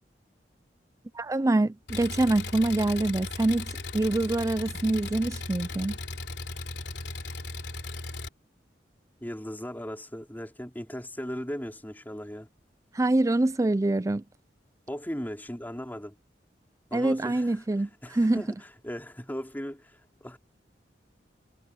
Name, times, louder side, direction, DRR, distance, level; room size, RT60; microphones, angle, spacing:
voice 1, 1.1-6.0 12.9-14.2 16.9-18.4, right 2 dB, 20° right, 0.4 m, -25 dB
Engine, 1.9-8.3, left 3 dB, 70° left, 4.0 m, -37 dB
voice 2, 9.2-12.5 14.9-16.2 16.9-20.4, equal, 10° left, 4.2 m, -38 dB
head